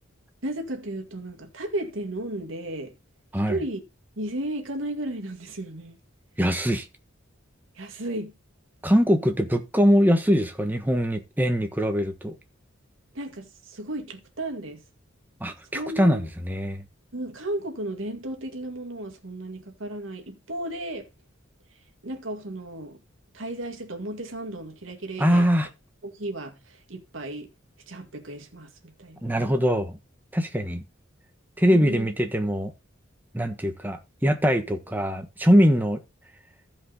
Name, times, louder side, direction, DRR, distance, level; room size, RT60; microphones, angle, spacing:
voice 1, 0.4-2.9 3.5-3.8 4.2-6.0 7.8-8.3 13.1-14.8 15.7-16.2 17.1-21.1 22.0-23.0 23.3-25.5 26.0-27.5 27.9-29.5 31.7-32.1, right 1 dB, 80° right, 1.9 m, -34 dB
voice 2, 6.4-6.8 8.8-12.3 15.4-16.8 25.2-25.7 29.2-30.0 30.3-30.8 31.6-32.7 33.3-36.0, equal, 10° right, 1.3 m, -22 dB
15.0 x 5.3 x 4.0 m
head